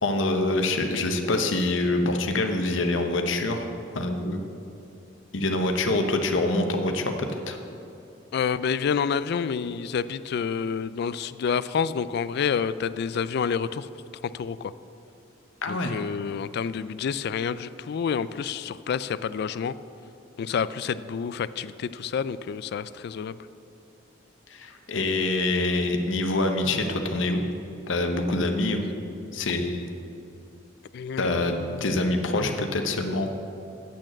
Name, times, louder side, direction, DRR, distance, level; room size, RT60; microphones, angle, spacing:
voice 1, 0.0-4.5 5.3-7.6 15.6-16.0 24.5-27.4 27.9-29.9 31.2-33.3, left 2 dB, 80° left, 5 dB, 0.9 m, -26 dB
voice 2, 8.3-13.9 14.2-14.7 15.7-19.8 20.4-23.4 30.9-31.9, left 6 dB, 60° left, 15 dB, 0.3 m, -29 dB
8.4 x 6.4 x 7.6 m, 2.8 s
head